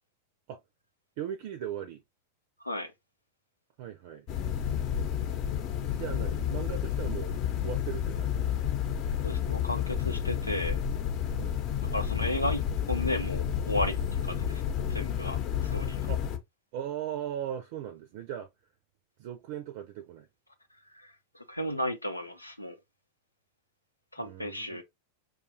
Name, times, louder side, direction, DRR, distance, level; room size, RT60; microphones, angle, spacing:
voice 1, 1.2-2.0 3.8-4.3 5.8-8.5 11.4-11.6 16.1-16.2 16.7-18.5 19.2-20.3 24.2-24.8, right 10 dB, 50° right, 0.6 m, -38 dB
sound 1, 4.3-16.4, left 9 dB, 40° left, 0.8 m, -30 dB
voice 2, 9.2-10.8 11.9-12.6 12.9-14.0 14.2-14.6 14.9-15.4 15.6-16.0 20.9-22.7 24.1-24.8, left 1 dB, 85° left, 0.8 m, -33 dB
5.0 x 2.4 x 2.8 m
figure-of-eight pair, 90°, 0 cm